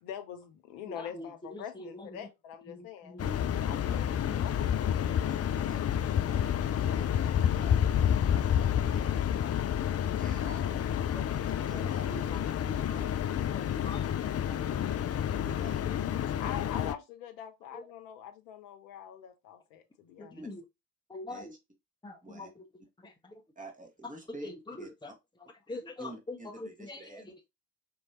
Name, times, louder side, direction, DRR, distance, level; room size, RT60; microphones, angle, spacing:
voice 1, 0.0-3.2 3.7-4.6 8.3-8.5 8.9-9.0 16.3-20.5, left 9 dB, 80° left, 0.8 m, -44 dB
voice 2, 0.8-2.3 2.7-4.4 5.0-5.3 11.1-11.2 11.6-13.0 13.3-14.0 17.7-17.9 20.2-20.6 21.1-21.5 22.0-22.6 23.0-23.4 24.4-25.1 25.7-27.5, left 2 dB, 10° left, 1.2 m, -45 dB
sound 1, 3.2-16.9, left 9 dB, 35° left, 0.5 m, -29 dB
voice 3, 5.2-7.8 8.4-9.1 10.2-10.9 11.6-13.1 13.4-15.0 15.3-16.5 20.3-20.5 21.3-21.6 22.2-22.5 23.6-24.5 24.8-25.1 26.0-27.5, right 2 dB, 20° right, 1.9 m, -50 dB
5.2 x 3.1 x 2.9 m
hypercardioid pair, 45°, 44 cm